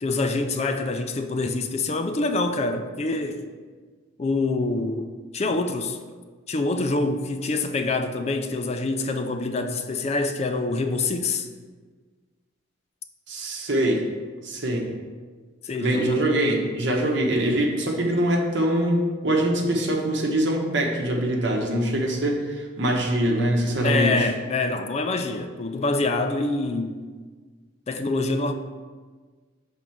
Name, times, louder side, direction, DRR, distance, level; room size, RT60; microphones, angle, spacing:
voice 1, 0.0-3.5 4.2-5.1 5.3-6.0 6.5-11.5 15.6-16.2 23.8-27.0 27.9-28.5, left 3 dB, 35° left, 7 dB, 0.4 m, -25 dB
voice 2, 13.3-14.0 14.4-14.9 15.8-24.3, right 1 dB, 65° right, 0 dB, 1.1 m, -23 dB
6.0 x 3.8 x 5.8 m, 1.5 s
head